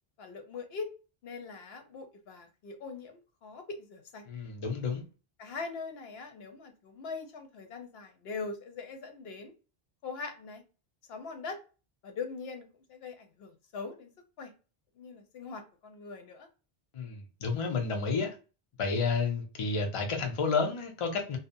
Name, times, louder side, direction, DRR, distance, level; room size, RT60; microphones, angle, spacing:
voice 1, 0.2-0.9 1.2-4.2 5.4-9.5 10.0-10.6 11.1-11.6 12.0-14.1 14.4-14.5 15.0-16.5, left 4 dB, 80° left, 0.8 m, -42 dB
voice 2, 4.3-5.0 16.9-18.3 18.8-21.4, left 4 dB, 40° left, 0.6 m, -31 dB
2.7 x 2.0 x 2.5 m
omnidirectional pair, 1.0 m